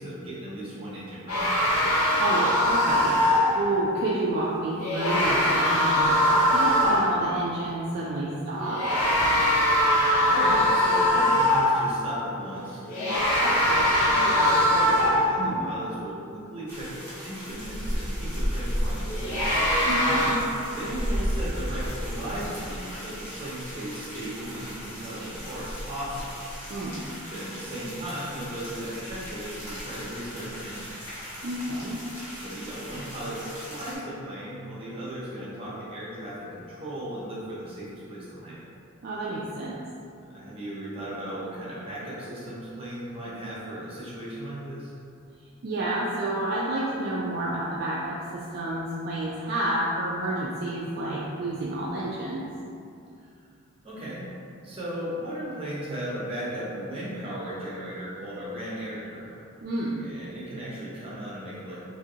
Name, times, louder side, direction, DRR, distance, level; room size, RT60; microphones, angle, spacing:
voice 1, 0.0-1.5 10.3-19.5 20.7-26.3 27.3-31.2 32.1-38.6 40.2-44.9 53.2-53.3 53.8-54.3 54.6-59.4 60.0-61.8, right 1 dB, 25° right, -8 dB, 0.8 m, -36 dB
sound 1, 1.3-3.6 4.8-7.2 8.6-11.9 12.9-15.5 19.1-20.3, left 1 dB, 85° left, 0.8 m, -22 dB
voice 2, 2.1-8.8 15.4-15.7 19.9-20.4 26.7-27.0 31.4-32.0 39.0-39.8 45.6-52.5 59.6-60.0, right 1 dB, 45° right, -6 dB, 0.3 m, -30 dB
sound 2, 16.7-33.9, equal, 10° left, 0.8 m, -35 dB
3.6 x 2.7 x 2.7 m, 2.5 s
head